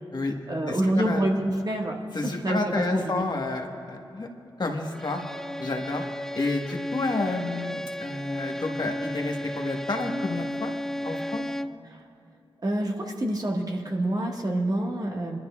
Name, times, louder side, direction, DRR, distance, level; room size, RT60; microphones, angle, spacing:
voice 1, 0.5-2.0 2.2-3.2 12.6-15.4, right 1 dB, 45° right, 0 dB, 1.7 m, -27 dB
voice 2, 2.1-4.3 4.6-5.2 5.6-6.0 6.3-10.7 11.0-11.4, left 2 dB, 50° left, 2 dB, 1.4 m, -30 dB
Bowed string instrument, 4.9-11.9, left 1 dB, 5° left, 0.3 m, -34 dB
26.5 x 12.0 x 2.4 m, 2.6 s
cardioid pair, 50°, 9 cm